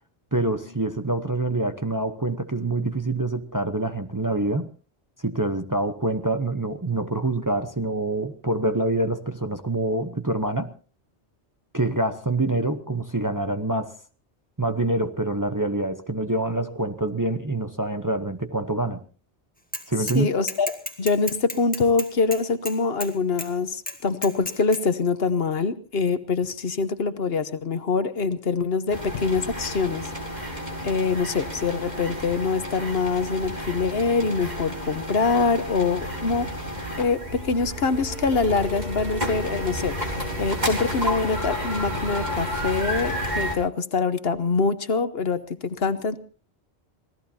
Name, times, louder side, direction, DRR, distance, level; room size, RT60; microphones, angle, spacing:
voice 1, 0.3-4.7 5.2-10.7 11.7-13.9 14.6-19.0 19.9-20.3, right 2 dB, 20° right, 8 dB, 0.8 m, -26 dB
Bicycle / Mechanisms, 19.7-20.2 20.5-23.1 23.4-23.5 23.9-24.8, left 1 dB, 10° left, 2.0 m, -33 dB
voice 2, 20.0-30.1 30.4-30.5 30.8-36.5 37.0-46.2, left 4 dB, 60° left, 12 dB, 1.2 m, -24 dB
sound 1, 28.9-43.5, equal, 40° right, 4.3 m, -31 dB
26.0 x 18.0 x 2.8 m, 0.38 s
omnidirectional pair, 1.2 m